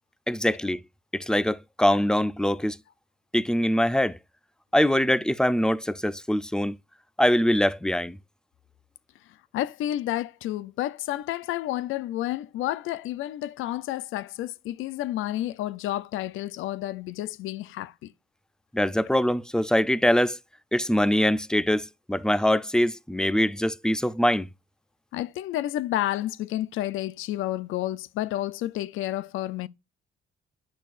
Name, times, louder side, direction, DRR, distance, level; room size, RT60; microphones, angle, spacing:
voice 1, 0.3-0.8 1.1-2.8 3.3-4.2 4.7-6.8 7.2-8.2 18.7-20.4 20.7-24.5, equal, 5° left, 0.4 m, -23 dB
voice 2, 9.5-18.1 25.1-29.7, left 14 dB, 85° left, 0.6 m, -30 dB
9.2 x 6.0 x 2.5 m
cardioid pair, 90°, 20 cm